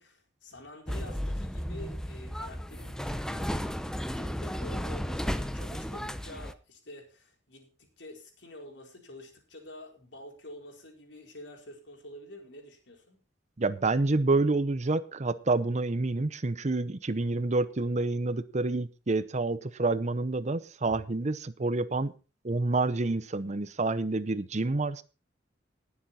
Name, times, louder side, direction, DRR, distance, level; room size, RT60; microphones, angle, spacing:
voice 1, 0.0-13.2, left 1 dB, 80° left, 2 dB, 4.5 m, -48 dB
sound 1, 0.9-6.5, equal, 5° left, 0.7 m, -34 dB
voice 2, 13.6-22.1 22.4-25.0, right 2 dB, 40° right, 15 dB, 0.8 m, -28 dB
19.5 x 7.3 x 4.2 m, 0.33 s
head